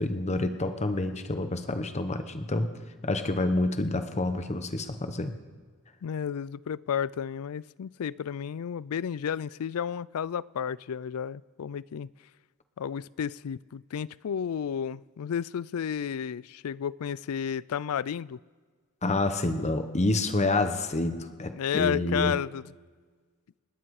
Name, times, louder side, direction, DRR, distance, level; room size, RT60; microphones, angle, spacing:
voice 1, 0.0-2.7 3.0-5.3 19.0-22.3, left 2 dB, 30° left, 8 dB, 1.0 m, -28 dB
voice 2, 6.0-12.1 12.8-18.4 21.5-22.6, left 8 dB, 80° left, 22 dB, 0.4 m, -32 dB
29.0 x 10.0 x 4.8 m, 1.5 s
head